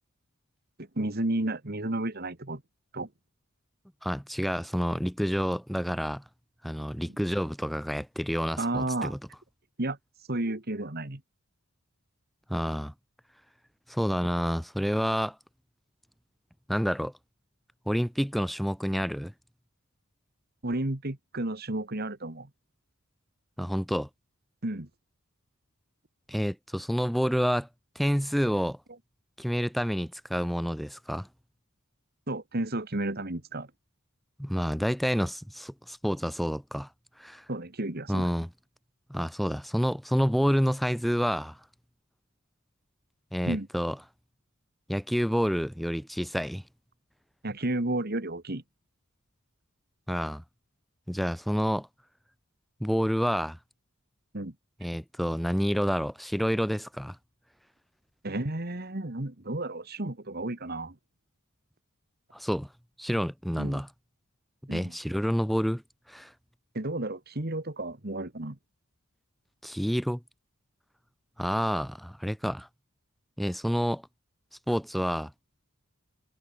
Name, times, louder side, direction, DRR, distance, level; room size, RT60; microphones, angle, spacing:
voice 1, 0.8-2.6 2.9-3.1 8.6-9.1 9.8-10.0 10.3-11.2 20.6-22.5 24.6-24.9 32.3-33.7 37.5-38.3 43.5-43.7 47.4-48.6 54.3-54.5 58.2-61.0 63.6-63.8 64.7-64.9 66.7-68.6, right 1 dB, 45° right, 1.9 m, -32 dB
voice 2, 4.0-6.2 6.6-9.2 12.5-12.9 13.9-15.4 16.7-17.1 17.9-19.3 23.6-24.1 26.3-27.7 28.0-28.8 29.4-31.3 34.4-36.9 37.2-37.4 38.1-38.5 39.1-41.6 43.3-44.0 44.9-46.6 50.1-50.4 51.1-51.9 52.8-53.6 54.8-57.2 62.3-62.7 63.0-63.9 64.7-65.8 66.1-66.3 69.6-70.2 71.4-72.7 73.4-74.0 74.7-75.3, equal, ahead, 1.7 m, -28 dB
head